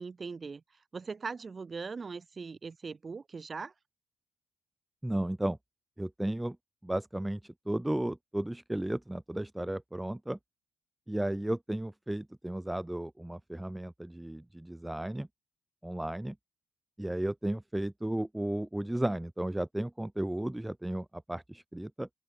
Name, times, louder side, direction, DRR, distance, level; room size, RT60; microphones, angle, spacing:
voice 1, 0.0-3.7, right 4 dB, 35° right, 1.6 m, -40 dB
voice 2, 5.0-5.6 6.0-6.6 6.8-10.4 11.1-15.3 15.8-16.4 17.0-22.1, right 1 dB, 10° right, 0.3 m, -34 dB
open air
cardioid pair, 90°, 0 cm